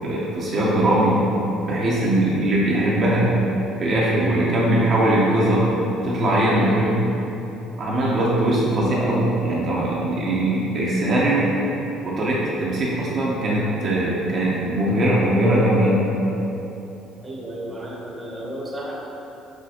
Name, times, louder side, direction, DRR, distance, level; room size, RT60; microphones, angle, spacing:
voice 1, 0.0-1.2 1.7-3.3 3.8-5.7 6.0-7.0 7.8-11.5 12.0-16.0, right 1 dB, 50° right, -5 dB, 0.6 m, -20 dB
voice 2, 17.2-19.0, right 1 dB, 15° right, -4 dB, 0.8 m, -33 dB
6.2 x 2.2 x 2.8 m, 3.0 s
cardioid pair, 105°, 0 cm